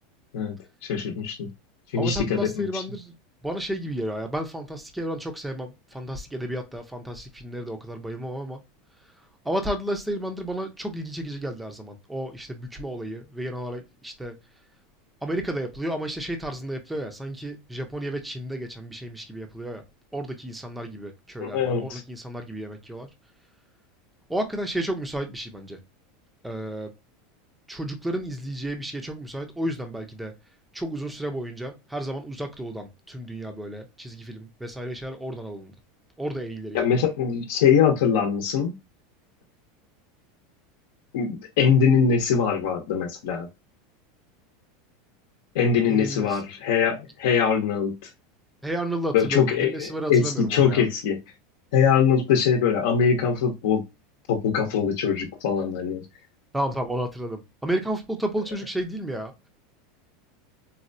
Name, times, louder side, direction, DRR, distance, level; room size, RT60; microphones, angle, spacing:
voice 1, 0.9-1.5 1.9-2.7 21.4-22.0 36.7-38.7 41.1-43.5 45.5-48.1 49.1-50.2 50.5-51.2 51.7-53.8 54.3-56.0, left 7 dB, 70° left, 0.8 m, -22 dB
voice 2, 1.9-3.2 3.4-8.6 9.0-14.4 15.2-19.8 20.1-23.1 24.3-25.8 26.4-26.9 27.7-30.3 30.7-35.7 36.2-37.0 45.8-46.4 48.6-50.8 56.5-59.5, right 1 dB, 5° right, 0.5 m, -32 dB
4.2 x 2.2 x 2.6 m
supercardioid pair, 165°, 0 cm